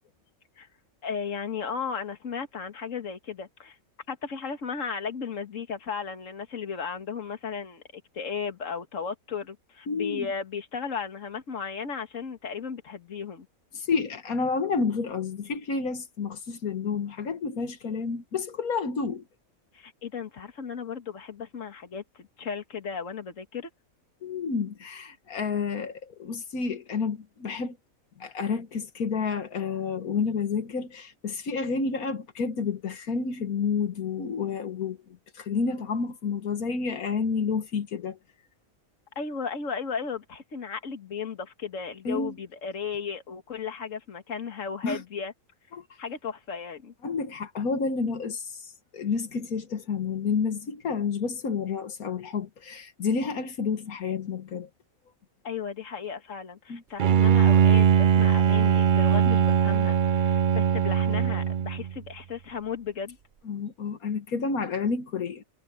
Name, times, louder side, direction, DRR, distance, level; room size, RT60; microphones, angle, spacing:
voice 1, 1.0-3.8 4.1-13.5 19.7-23.7 39.2-45.3 46.0-46.9 55.4-63.2, left 6 dB, 60° left, 2.1 m, -35 dB
voice 2, 9.9-10.3 13.7-19.2 24.2-27.8 28.2-35.0 35.3-38.2 42.1-42.3 44.8-45.0 45.7-45.8 47.0-54.7 56.7-56.8 63.5-65.4, left 5 dB, 85° left, 1.9 m, -30 dB
Bowed string instrument, 57.0-61.9, right 8 dB, 55° right, 0.5 m, -21 dB
omnidirectional pair, 1.5 m